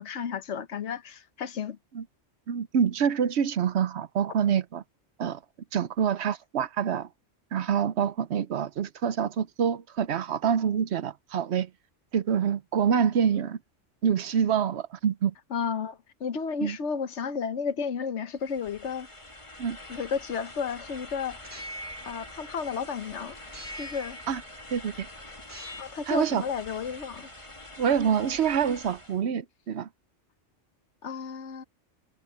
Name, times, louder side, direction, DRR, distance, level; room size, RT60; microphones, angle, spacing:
voice 1, 0.0-1.8 15.5-19.1 19.9-21.4 22.0-23.4 23.7-24.2 25.8-27.3 31.0-31.6, left 6 dB, 70° left, 1.3 m, -32 dB
voice 2, 2.5-4.8 5.2-5.4 5.7-7.1 7.5-11.7 12.1-13.6 14.0-15.3 16.6-16.8 19.6-19.8 24.3-24.4 24.7-25.1 26.1-26.4 27.8-29.9, right 8 dB, 65° right, 0.9 m, -26 dB
sound 1, 18.4-29.2, left 1 dB, 25° left, 2.4 m, -46 dB
sound 2, 21.4-23.0 23.5-24.9 25.4-26.1, equal, 15° right, 3.4 m, -43 dB
omnidirectional pair, 1.2 m